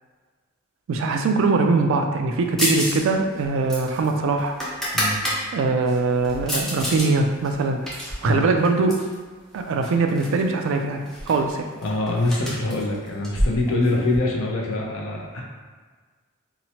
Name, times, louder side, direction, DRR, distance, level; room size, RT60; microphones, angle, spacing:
voice 1, 0.9-4.5 5.5-7.8 8.1-9.0 9.5-11.7, right 3 dB, 65° right, 4 dB, 0.3 m, -22 dB
sound 1, 2.6-3.0 3.3-5.4 5.9-7.1 7.4-9.1 9.8-10.4 10.7-10.8 11.1-14.2, equal, ahead, 0.5 m, -28 dB
voice 2, 11.8-15.4, left 2 dB, 70° left, -2 dB, 0.5 m, -24 dB
2.9 x 2.1 x 2.8 m, 1.4 s
head